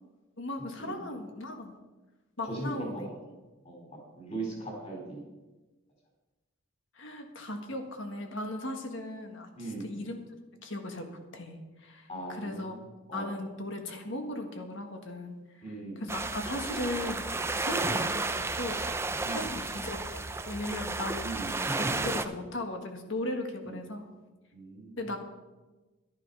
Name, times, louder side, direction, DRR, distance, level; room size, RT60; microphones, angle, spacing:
voice 1, 0.4-1.8 2.4-3.1 7.0-10.2 10.6-12.7 13.1-15.6 16.0-17.2 17.5-18.8 19.3-21.3 21.7-24.1 25.0-25.2, left 1 dB, 65° left, 5 dB, 1.7 m, -37 dB
voice 2, 2.5-3.0 3.6-3.8 4.1-5.2 9.6-10.0 12.1-12.8 13.1-13.3 15.6-16.1 17.6-17.8 19.2-19.5 21.2-22.1 23.6-23.8 24.5-25.0, right 2 dB, 35° left, -1 dB, 4.5 m, -39 dB
sound 1, 16.1-22.3, right 3 dB, 10° right, 0.4 m, -32 dB
12.0 x 10.5 x 5.6 m, 1.2 s
head